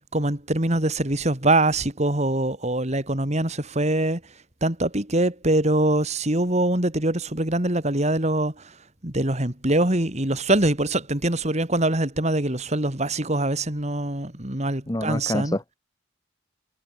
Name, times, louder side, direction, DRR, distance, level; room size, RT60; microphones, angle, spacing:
voice 1, 0.1-4.2 4.6-8.7 9.0-15.6, right 1 dB, 35° right, 2.8 m, -23 dB
voice 2, 14.9-15.7, left 1 dB, 20° left, 1.1 m, -27 dB
head